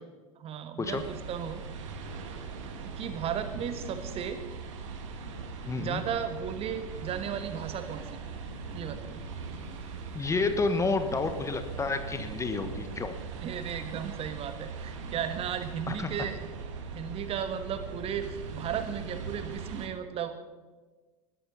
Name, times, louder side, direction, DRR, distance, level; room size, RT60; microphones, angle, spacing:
voice 1, 0.4-1.6 3.0-4.4 5.8-8.0 8.7-9.0 13.3-16.4 16.9-20.5, right 8 dB, 35° right, 10 dB, 1.4 m, -35 dB
sound 1, 0.8-19.9, right 4 dB, 55° right, 2.1 m, -40 dB
voice 2, 5.6-6.0 10.1-13.1 15.9-16.1, left 3 dB, 15° left, 9 dB, 1.3 m, -30 dB
sound 2, 7.7-13.1, left 1 dB, 80° right, 3.4 m, -51 dB
20.5 x 14.0 x 4.1 m, 1.3 s
figure-of-eight pair, 80°, 18 cm